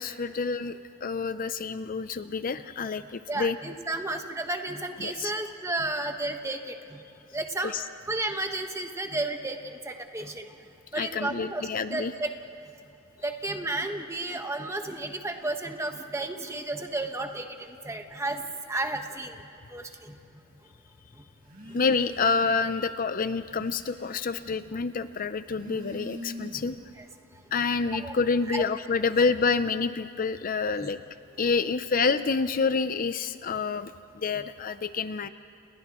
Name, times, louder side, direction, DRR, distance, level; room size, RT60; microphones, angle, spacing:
voice 1, 0.0-3.6 5.0-5.3 7.6-7.8 10.9-12.1 21.7-26.8 27.5-31.0 31.4-35.3, left 4 dB, 45° left, 11 dB, 0.5 m, -28 dB
voice 2, 3.3-7.0 7.3-7.8 8.1-10.5 10.9-12.3 13.2-19.4 19.7-20.2 21.2-21.3 27.0-27.1 28.0-28.1 28.5-28.6 30.7-30.9 34.4-34.5, right 2 dB, 15° right, 4 dB, 1.3 m, -33 dB
Telephone, 21.4-22.7 23.1-24.7 25.4-26.9, equal, 45° right, 4.3 m, -43 dB
30.0 x 29.5 x 3.1 m, 2.7 s
head